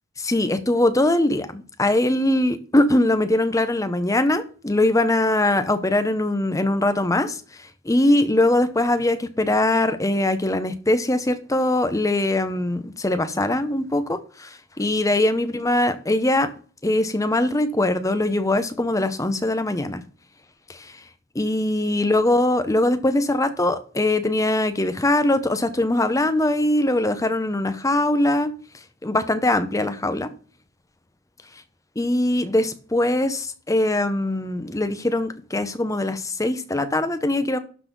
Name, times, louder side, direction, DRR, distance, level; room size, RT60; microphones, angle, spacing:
voice 1, 0.2-7.4 7.8-16.5 16.8-20.0 20.7-20.9 21.3-28.5 29.0-30.3 32.0-37.6, left 1 dB, 15° left, 0.8 m, -21 dB
12.0 x 4.1 x 5.4 m
head